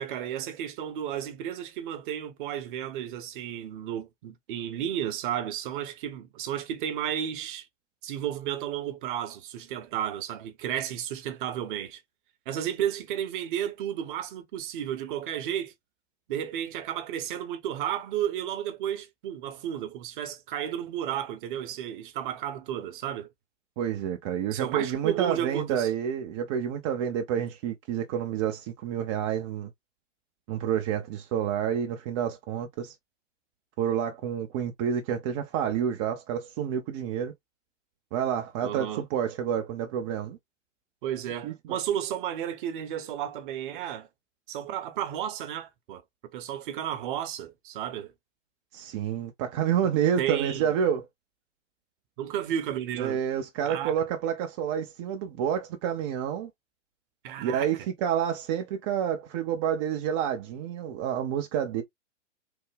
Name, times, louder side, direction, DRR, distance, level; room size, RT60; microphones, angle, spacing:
voice 1, 0.0-7.7 8.0-12.0 12.5-15.7 16.3-23.3 24.5-25.9 38.6-39.0 41.0-44.1 44.5-46.0 46.3-48.1 50.2-50.7 52.2-53.2 53.6-54.0 57.2-57.7, right 10 dB, 45° right, 0.8 m, -33 dB
voice 2, 23.8-29.7 30.5-32.9 33.8-37.3 38.1-40.4 41.4-41.8 48.7-51.1 53.0-56.5 57.4-61.8, right 9 dB, 25° right, 0.4 m, -29 dB
3.4 x 2.1 x 3.3 m
hypercardioid pair, 115°, 37 cm